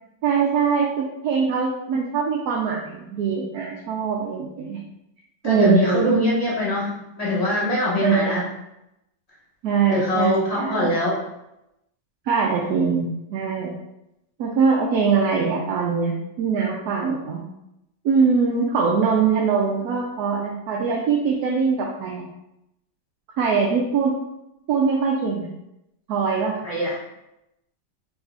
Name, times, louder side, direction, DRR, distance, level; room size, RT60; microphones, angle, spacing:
voice 1, 0.2-4.8 5.4-6.1 8.0-8.5 9.6-10.9 12.3-13.8 14.4-17.4 18.0-22.3 23.4-24.2 24.7-25.5 26.1-26.6, right 5 dB, 70° right, -2 dB, 1.0 m, -22 dB
voice 2, 5.4-8.5 9.9-11.2 26.6-27.0, left 1 dB, 45° left, -6 dB, 0.5 m, -22 dB
4.8 x 3.1 x 2.4 m, 0.88 s
omnidirectional pair, 1.9 m